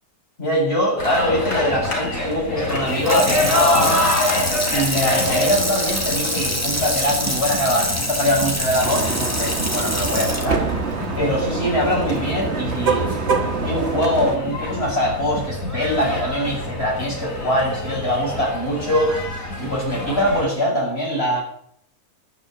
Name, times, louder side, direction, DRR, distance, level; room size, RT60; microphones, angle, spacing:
voice 1, 0.4-4.1 4.7-10.7 11.2-13.1 13.6-19.1 19.6-21.4, equal, 40° left, -4 dB, 7.7 m, -23 dB
sound 1, 1.0-20.5, left 1 dB, 65° left, 4.5 m, -26 dB
Water tap faucet / Sink (filling or washing), 2.9-12.1 12.5-12.6, equal, 10° left, 2.3 m, -26 dB
sound 2, 8.8-14.4, right 5 dB, 45° right, 1.5 m, -25 dB
13.0 x 10.5 x 7.7 m, 0.69 s
omnidirectional pair, 1.6 m